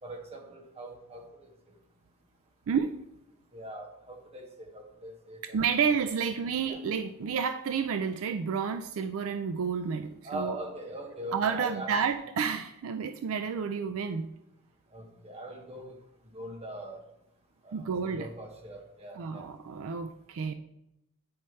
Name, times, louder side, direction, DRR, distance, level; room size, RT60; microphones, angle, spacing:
voice 1, 0.0-1.5 3.5-5.6 6.6-6.8 10.2-12.0 14.9-16.0 16.3-17.0 17.6-19.5 19.8-19.9, right 1 dB, 30° right, 3 dB, 1.1 m, -42 dB
voice 2, 5.5-10.6 11.3-14.3 17.7-18.3 19.2-20.5, right 6 dB, 65° right, 8 dB, 0.4 m, -30 dB
8.7 x 5.5 x 3.1 m, 0.85 s
head